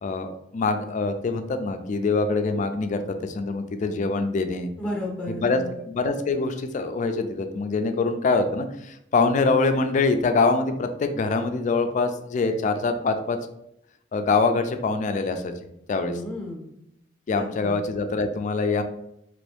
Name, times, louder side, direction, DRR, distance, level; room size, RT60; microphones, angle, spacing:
voice 1, 0.0-4.7 5.4-5.6 5.9-13.4 14.1-15.5 15.9-16.2 17.3-18.8, left 3 dB, 40° left, 8 dB, 0.3 m, -24 dB
voice 2, 4.8-5.7 16.1-16.7 17.3-17.8, left 1 dB, 5° left, -2 dB, 0.7 m, -33 dB
3.0 x 2.6 x 3.3 m, 0.79 s
head